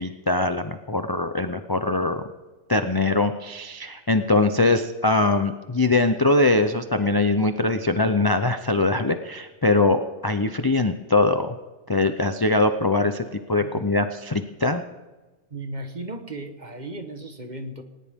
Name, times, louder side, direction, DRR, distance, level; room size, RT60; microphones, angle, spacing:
voice 1, 0.0-2.2 2.7-11.6 11.9-14.8, left 2 dB, 25° left, 7 dB, 0.5 m, -22 dB
voice 2, 13.6-13.9 15.5-17.8, right 2 dB, 35° right, 6 dB, 1.4 m, -36 dB
19.0 x 19.0 x 3.7 m, 1.2 s
omnidirectional pair, 1.3 m